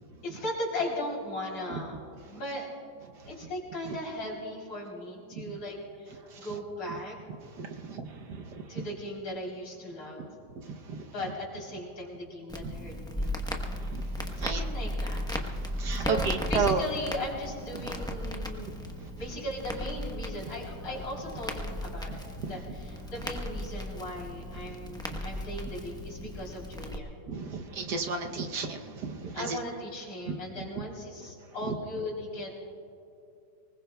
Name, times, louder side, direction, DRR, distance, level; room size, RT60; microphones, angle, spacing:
voice 1, 0.0-2.9 3.3-7.2 7.7-10.4 11.1-13.7 14.4-15.3 15.9-18.8 19.2-27.2 29.2-32.5, left 1 dB, 75° left, -2 dB, 4.2 m, -38 dB
voice 2, 7.6-8.4 10.6-11.0 13.9-14.6 15.8-16.8 22.4-22.5 27.3-29.6 30.3-30.4, right 5 dB, 65° right, 4 dB, 1.5 m, -33 dB
Crackle, 12.5-27.0, left 1 dB, 5° left, 0.5 m, -36 dB
24.0 x 20.5 x 2.3 m, 2.5 s
omnidirectional pair, 2.1 m